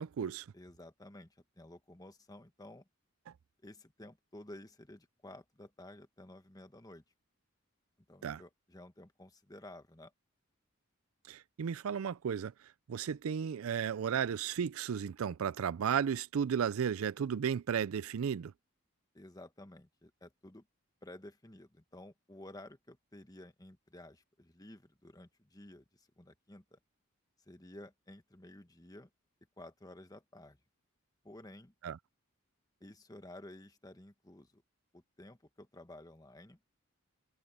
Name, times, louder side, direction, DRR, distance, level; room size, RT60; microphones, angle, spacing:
voice 1, 0.0-0.5 8.2-8.4 11.3-12.5 12.9-18.5 31.8-32.0, right 7 dB, 75° right, 0.4 m, -34 dB
voice 2, 0.5-2.8 3.6-7.0 8.1-10.1 19.1-20.7 21.0-26.8 27.5-29.1 29.6-30.6 31.2-31.7 32.8-34.6 34.9-36.6, left 1 dB, 15° left, 1.4 m, -53 dB
head